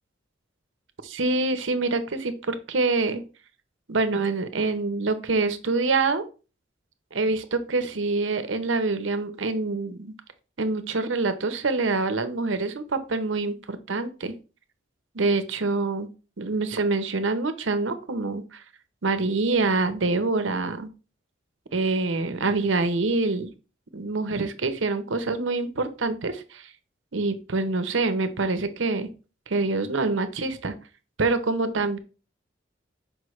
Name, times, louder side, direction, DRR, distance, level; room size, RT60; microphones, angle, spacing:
voice 1, 1.0-3.2 3.9-6.2 7.1-10.1 10.6-14.3 15.1-16.1 16.4-18.6 19.0-20.9 21.7-23.5 23.9-26.7 27.1-29.1 29.5-30.7 31.2-32.0, right 3 dB, 75° right, 10 dB, 0.8 m, -26 dB
6.4 x 5.1 x 3.1 m, 0.33 s
head